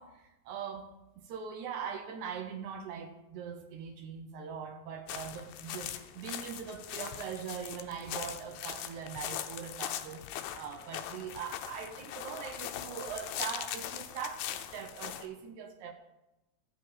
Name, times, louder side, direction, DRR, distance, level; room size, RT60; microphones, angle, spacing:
voice 1, 0.0-15.9, right 7 dB, 75° right, 6 dB, 1.8 m, -41 dB
sound 1, 5.1-15.3, left 11 dB, 90° left, 2.4 m, -41 dB
14.5 x 8.3 x 3.9 m, 0.98 s
omnidirectional pair, 4.2 m